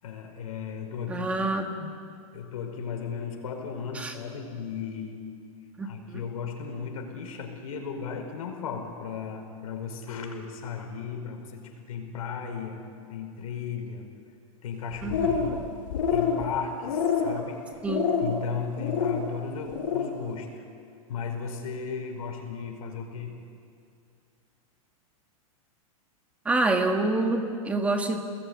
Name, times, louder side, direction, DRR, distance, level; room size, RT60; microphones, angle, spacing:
voice 1, 0.0-1.6 2.3-5.3 5.8-14.1 14.6-15.8 16.1-17.8 18.2-20.6 21.1-23.4, left 6 dB, 75° left, 3 dB, 5.1 m, -36 dB
voice 2, 1.1-1.9 4.0-4.1 5.8-6.2 15.0-15.6 17.8-18.2 26.5-28.2, right 2 dB, 5° right, 4 dB, 1.7 m, -27 dB
sound 1, 14.9-15.6 15.9-16.4 16.8-17.4 17.9-18.4 18.8-19.2 19.6-20.1, left 6 dB, 55° left, 6.9 m, -26 dB
28.0 x 20.0 x 9.7 m, 2.4 s
supercardioid pair, 170°, 18 cm